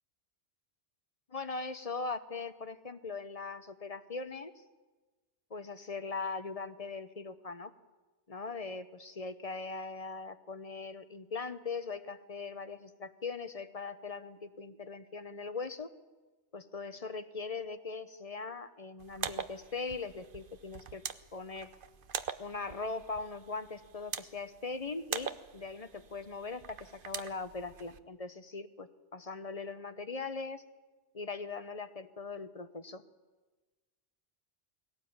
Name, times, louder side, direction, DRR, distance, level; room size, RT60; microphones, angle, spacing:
voice 1, 1.3-4.5 5.5-7.7 8.3-15.9 16.5-21.0 21.3-21.7 22.4-30.6 31.1-33.0, left 4 dB, 35° left, 11 dB, 0.9 m, -40 dB
sound 1, 19.0-28.0, right 7 dB, 50° right, 0.9 m, -43 dB
20.5 x 17.5 x 8.7 m, 1.2 s
omnidirectional pair, 1.3 m